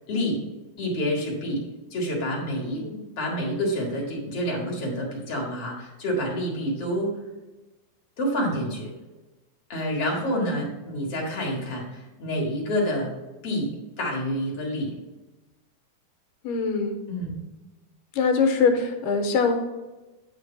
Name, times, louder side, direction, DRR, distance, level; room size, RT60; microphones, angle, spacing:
voice 1, 0.1-0.4 0.8-1.6 1.9-2.8 3.2-7.2 8.2-8.9 9.7-13.1 13.4-14.9 17.1-17.4, equal, 50° left, -2 dB, 2.2 m, -28 dB
voice 2, 16.4-17.0 18.1-19.6, left 4 dB, 80° left, 4 dB, 2.4 m, -23 dB
9.5 x 3.3 x 5.8 m, 1.1 s
omnidirectional pair, 4.0 m